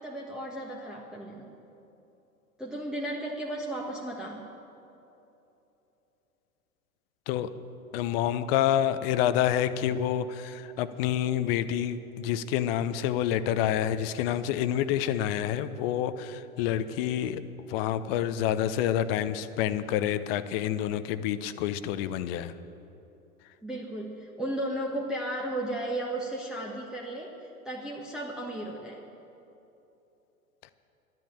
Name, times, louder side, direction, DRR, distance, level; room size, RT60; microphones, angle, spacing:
voice 1, 0.0-1.5 2.6-4.5 23.6-29.0, right 1 dB, ahead, -4 dB, 1.3 m, -35 dB
voice 2, 7.9-17.4 17.7-22.5 30.6-30.7, left 10 dB, 45° left, 13 dB, 0.8 m, -28 dB
12.0 x 11.0 x 8.8 m, 3.0 s
figure-of-eight pair, 90°, 42 cm